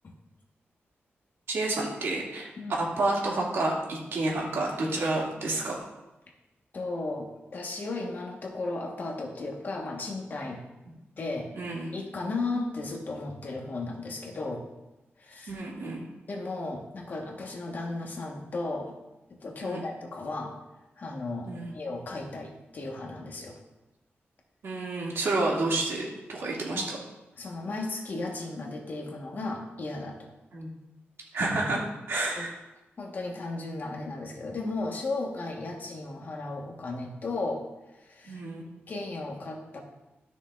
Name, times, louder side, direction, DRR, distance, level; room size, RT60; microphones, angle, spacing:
voice 1, 1.5-5.8 11.5-11.9 15.5-16.0 19.6-19.8 21.5-21.7 24.6-27.0 30.5-30.7 31.3-32.5 38.3-38.6, right 2 dB, 75° right, -3 dB, 2.0 m, -30 dB
voice 2, 6.7-10.6 11.2-11.5 11.9-14.6 15.2-15.6 16.3-18.9 19.4-20.5 21.0-23.6 26.7-26.9 27.4-30.3 31.7-31.8 32.3-32.5 33.0-37.7 38.0-38.4 38.9-39.8, left 2 dB, 45° left, 1 dB, 1.2 m, -35 dB
12.5 x 6.2 x 2.4 m, 1.0 s
wide cardioid pair, 180°, 4 cm